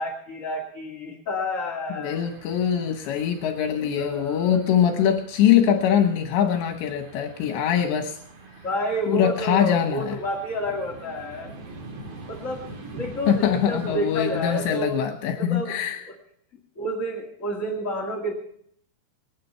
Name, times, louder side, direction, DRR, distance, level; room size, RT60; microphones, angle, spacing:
voice 1, 0.0-2.3 3.0-3.1 3.8-4.6 8.6-11.5 12.3-15.0 15.3-15.8 16.1-16.2 16.7-18.3, equal, 30° left, -2 dB, 1.4 m, -30 dB
voice 2, 2.0-8.2 9.1-10.2 13.3-16.0, left 9 dB, 75° left, 5 dB, 3.3 m, -23 dB
sound 1, 2.1-14.9, right 2 dB, 40° right, 2.7 m, -44 dB
24.0 x 9.4 x 5.6 m, 0.66 s
omnidirectional pair, 5.2 m